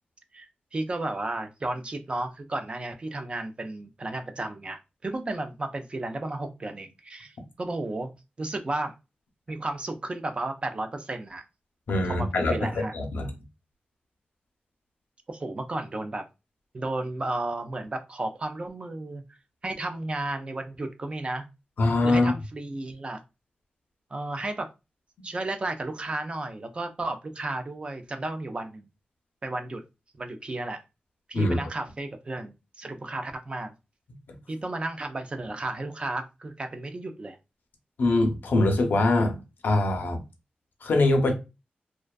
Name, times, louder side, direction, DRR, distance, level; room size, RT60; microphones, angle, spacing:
voice 1, 0.3-8.1 8.4-8.9 9.5-11.4 12.1-12.9 15.3-16.3 16.7-19.2 19.6-21.5 22.0-23.2 24.1-24.7 25.2-28.9 29.4-29.8 30.2-30.8 31.3-33.7 34.5-37.4, right 2 dB, 35° right, 0.4 m, -33 dB
voice 2, 11.9-12.6 12.9-13.3 21.8-22.3 31.3-31.6 38.0-40.2 40.8-41.3, left 2 dB, 85° left, 0.6 m, -23 dB
2.4 x 2.2 x 2.2 m
wide cardioid pair, 130°, 3 cm